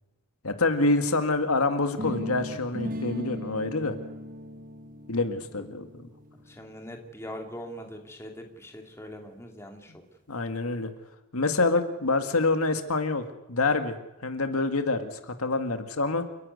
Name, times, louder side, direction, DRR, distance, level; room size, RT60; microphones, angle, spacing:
voice 1, 0.4-4.0 5.1-5.9 10.3-10.9 11.3-16.3, left 3 dB, 85° left, 7 dB, 2.0 m, -26 dB
sound 1, 2.0-7.9, left 1 dB, 40° right, 1.7 m, -38 dB
voice 2, 6.5-10.0, equal, 10° left, 3 dB, 2.6 m, -42 dB
29.5 x 11.0 x 9.4 m, 1.0 s
head